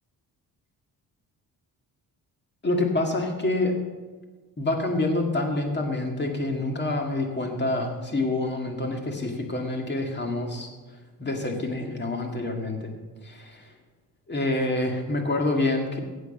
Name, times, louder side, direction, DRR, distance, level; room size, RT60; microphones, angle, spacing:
voice 1, 2.6-3.8 4.6-10.7 11.2-12.9 13.2-13.7 14.3-16.0, left 2 dB, 25° left, 3 dB, 2.0 m, -27 dB
15.5 x 8.2 x 5.3 m, 1.4 s
cardioid pair, 130°, 40 cm